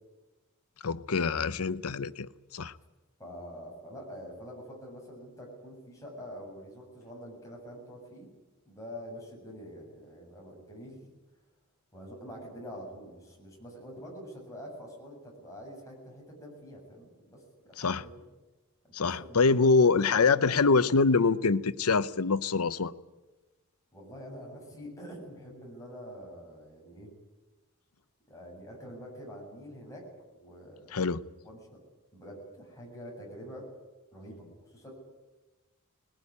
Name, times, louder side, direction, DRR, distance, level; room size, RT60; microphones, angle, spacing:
voice 1, 0.8-2.7 17.8-18.0 18.9-22.9 30.9-31.2, left 4 dB, 85° left, 0.8 m, -25 dB
voice 2, 3.2-8.3 8.7-11.1 11.9-17.7 18.0-18.1 18.8-20.6 20.9-21.0 23.9-27.1 28.3-30.0 30.4-30.9 31.4-31.8 32.1-33.6 34.1-34.9, equal, 15° left, 7.9 m, -46 dB
20.5 x 18.0 x 9.9 m
head